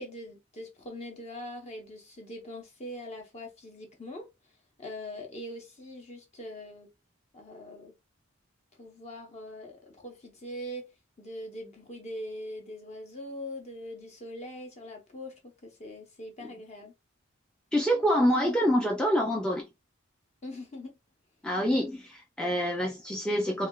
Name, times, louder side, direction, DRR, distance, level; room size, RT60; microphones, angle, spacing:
voice 1, 0.0-4.3 4.8-6.9 7.3-7.9 8.8-10.9 11.2-16.9 20.4-20.9, left 1 dB, 35° left, 0.8 m, -42 dB
voice 2, 17.7-19.7 21.4-23.7, equal, 5° left, 0.4 m, -26 dB
3.2 x 2.2 x 2.3 m
head